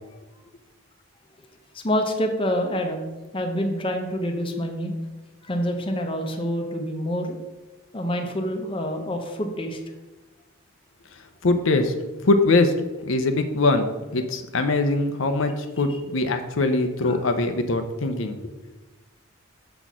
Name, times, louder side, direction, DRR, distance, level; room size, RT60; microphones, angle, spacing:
voice 1, 1.7-3.0 3.3-4.9 5.4-7.4 7.9-9.8 17.0-17.2, equal, 25° left, 3 dB, 0.8 m, -27 dB
voice 2, 11.4-11.9 12.2-12.7 13.1-18.4, left 2 dB, 70° left, 6 dB, 0.6 m, -22 dB
6.8 x 4.2 x 6.0 m, 1.2 s
head